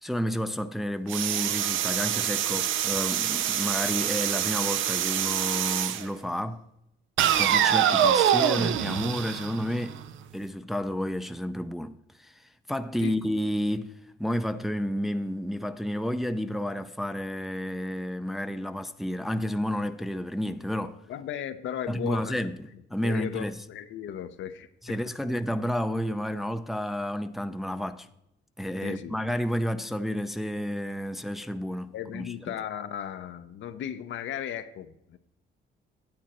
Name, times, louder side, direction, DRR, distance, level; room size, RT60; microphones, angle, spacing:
voice 1, 0.0-6.6 7.4-10.0 10.3-13.9 14.2-21.0 21.9-22.6 22.9-23.6 24.8-28.1 28.6-32.5, equal, ahead, 0.5 m, -31 dB
Vacuum Sounds, 1.1-6.1 7.2-10.1, right 10 dB, 80° right, 0.6 m, -25 dB
voice 2, 21.1-22.4 23.0-24.7 28.8-29.2 31.9-35.2, left 9 dB, 70° left, 0.7 m, -36 dB
9.0 x 8.8 x 4.3 m
cardioid pair, 90°, 20 cm